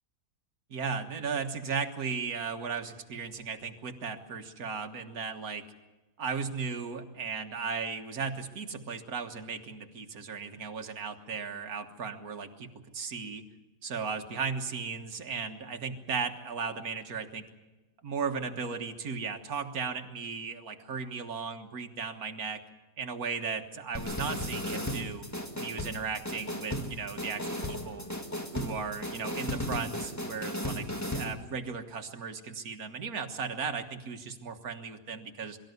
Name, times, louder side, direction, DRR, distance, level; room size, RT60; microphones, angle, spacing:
voice 1, 0.7-5.6 6.2-13.4 13.8-17.4 18.0-22.6 23.0-25.2 25.5-28.1 28.5-30.9 31.1-35.6, right 5 dB, 70° right, 5 dB, 1.9 m, -36 dB
sound 1, 23.9-31.3, left 1 dB, 10° left, 1.7 m, -35 dB
23.5 x 13.0 x 9.4 m, 1.1 s
omnidirectional pair, 1.6 m